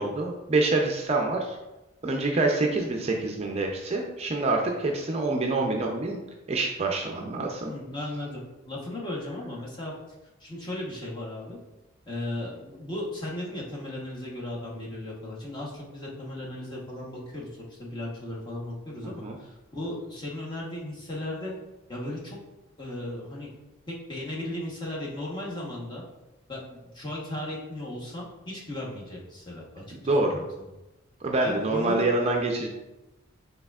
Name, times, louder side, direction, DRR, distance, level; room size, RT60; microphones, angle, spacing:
voice 1, 0.0-1.6 2.0-6.2 6.5-7.7 19.0-19.4 29.9-30.4 31.2-32.7, right 2 dB, 30° right, 1 dB, 0.4 m, -26 dB
voice 2, 7.7-9.9 10.4-11.6 12.1-21.5 21.9-22.4 22.8-23.5 23.9-26.0 26.5-29.8 30.2-30.7 31.4-32.1, left 1 dB, 20° left, -4 dB, 1.0 m, -36 dB
6.4 x 3.4 x 2.3 m, 1.0 s
head